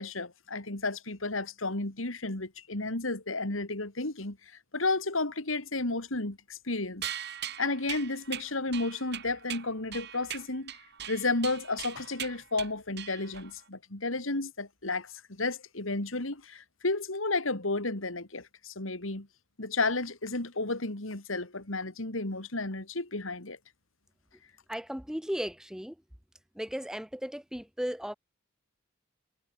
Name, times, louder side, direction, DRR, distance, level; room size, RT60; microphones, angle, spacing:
voice 1, 0.0-4.4 4.7-7.1 7.6-10.7 11.1-19.3 19.6-23.6, left 3 dB, 75° left, 3.0 m, -32 dB
sound 1, 7.0-13.6, right 10 dB, 55° right, 5.0 m, -40 dB
voice 2, 24.7-26.0 26.5-28.1, equal, 5° right, 1.1 m, -35 dB
head